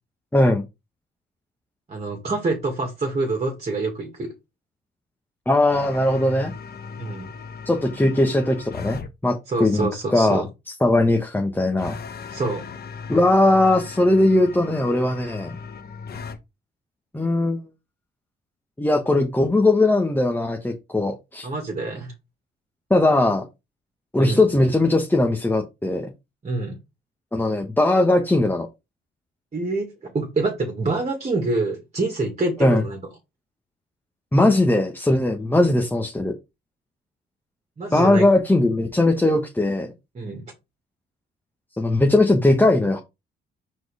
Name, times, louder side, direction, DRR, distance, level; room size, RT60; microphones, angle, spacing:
voice 1, 0.3-0.6 5.5-6.5 7.6-10.4 10.8-11.9 13.1-15.5 17.1-17.6 18.8-21.5 22.9-23.4 24.1-26.1 27.3-28.7 32.6-32.8 34.3-36.3 37.9-39.9 41.8-43.0, left 2 dB, 10° left, 1.2 m, -19 dB
voice 2, 1.9-4.3 7.0-7.3 9.5-10.4 12.3-12.6 21.4-22.1 24.2-24.4 26.4-26.8 29.5-33.0 37.8-38.2 40.1-40.5, right 3 dB, 35° right, 2.0 m, -26 dB
sound 1, 5.7-9.1 11.8-16.4, left 5 dB, 50° left, 1.1 m, -37 dB
4.8 x 4.2 x 4.8 m
cardioid pair, 90°, 20 cm